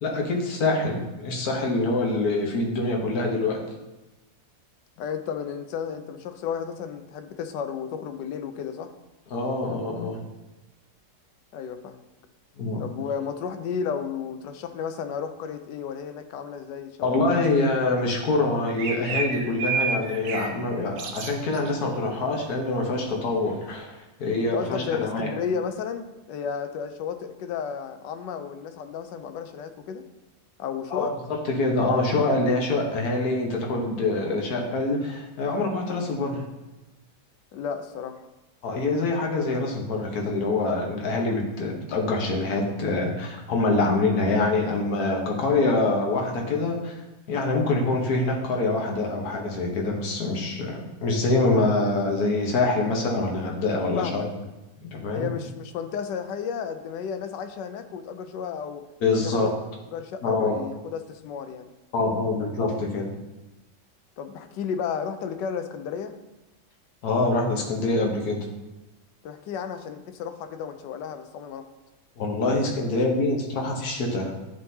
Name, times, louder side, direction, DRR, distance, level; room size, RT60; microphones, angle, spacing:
voice 1, 0.0-3.6 9.3-10.2 12.6-12.8 17.0-25.3 30.9-36.4 38.6-47.0 47.3-54.2 54.8-55.3 59.0-59.5 60.2-60.6 61.9-63.1 67.0-68.5 72.2-74.3, left 2 dB, 60° left, 0 dB, 1.6 m, -25 dB
voice 2, 5.0-8.9 11.5-12.0 12.8-17.6 24.4-30.0 30.6-31.1 37.5-38.3 54.0-54.3 55.1-58.8 59.2-59.5 59.9-61.7 64.2-66.2 69.2-71.7, left 7 dB, 85° left, 8 dB, 1.2 m, -33 dB
sound 1, 18.8-20.6 21.0-21.7, right 5 dB, 70° right, 1.0 m, -29 dB
10.5 x 3.7 x 2.8 m, 1.0 s
omnidirectional pair, 1.9 m